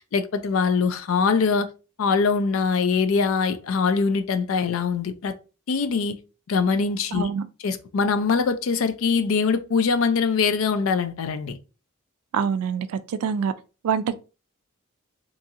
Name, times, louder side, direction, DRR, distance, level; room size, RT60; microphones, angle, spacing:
voice 1, 0.1-1.7 2.0-5.3 5.7-6.2 6.5-7.3 7.6-11.6, left 5 dB, 65° left, 0.4 m, -23 dB
voice 2, 7.1-7.5 12.3-13.5 13.8-14.1, right 6 dB, 85° right, 0.3 m, -25 dB
2.9 x 2.7 x 2.4 m
head